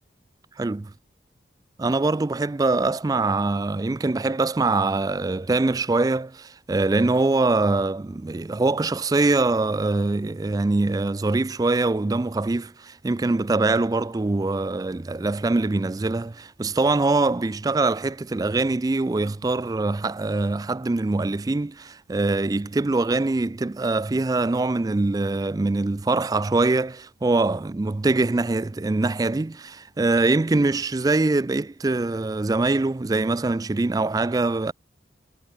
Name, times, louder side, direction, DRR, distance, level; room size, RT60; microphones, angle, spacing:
voice 1, 0.6-0.9 1.8-34.7, right 3 dB, 20° right, 0.3 m, -23 dB
head